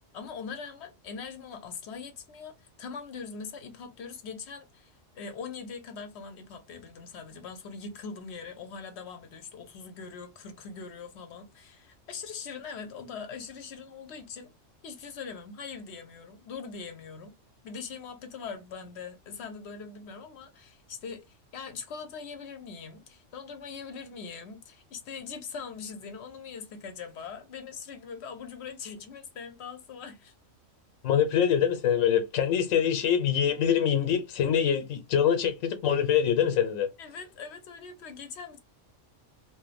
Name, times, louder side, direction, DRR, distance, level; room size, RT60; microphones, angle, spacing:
voice 1, 0.0-14.5 14.8-17.3 17.6-30.3 37.0-38.6, left 5 dB, 65° left, 0.8 m, -42 dB
voice 2, 31.0-36.9, left 8 dB, 90° left, 1.0 m, -24 dB
2.5 x 2.1 x 3.9 m
omnidirectional pair, 1.3 m